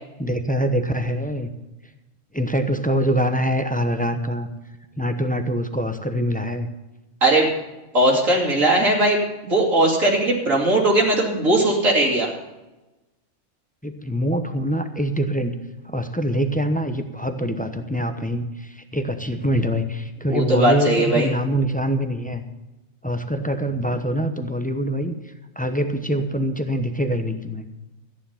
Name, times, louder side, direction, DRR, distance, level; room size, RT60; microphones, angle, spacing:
voice 1, 0.2-1.5 2.3-4.5 5.0-6.7 13.8-15.5 15.8-22.4 23.0-25.1 25.6-27.6, equal, 10° left, 7 dB, 0.7 m, -24 dB
voice 2, 7.9-12.3 20.3-21.3, right 1 dB, 70° right, -2 dB, 2.8 m, -19 dB
14.0 x 10.0 x 5.7 m, 1.0 s
omnidirectional pair, 1.4 m